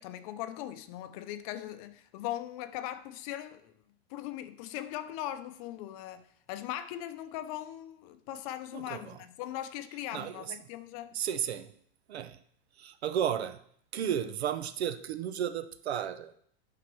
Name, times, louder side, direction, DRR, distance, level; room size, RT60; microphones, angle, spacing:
voice 1, 0.0-3.7 4.1-11.1, left 12 dB, 35° left, 0.6 m, -39 dB
voice 2, 8.7-9.2 10.1-10.5 11.1-11.7 12.1-12.4 12.8-13.6 13.9-16.4, right 9 dB, 80° right, 0.9 m, -33 dB
9.4 x 5.8 x 6.1 m
supercardioid pair, 150°, 31 cm